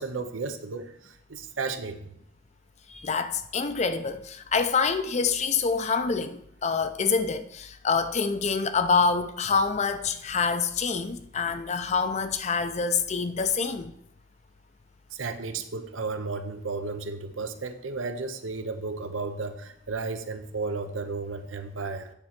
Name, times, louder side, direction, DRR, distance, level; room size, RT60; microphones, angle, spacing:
voice 1, 0.0-2.0 15.1-22.1, right 4 dB, 85° right, 0.8 m, -33 dB
voice 2, 2.9-13.9, left 5 dB, 35° left, 0.5 m, -26 dB
8.9 x 4.3 x 5.9 m
head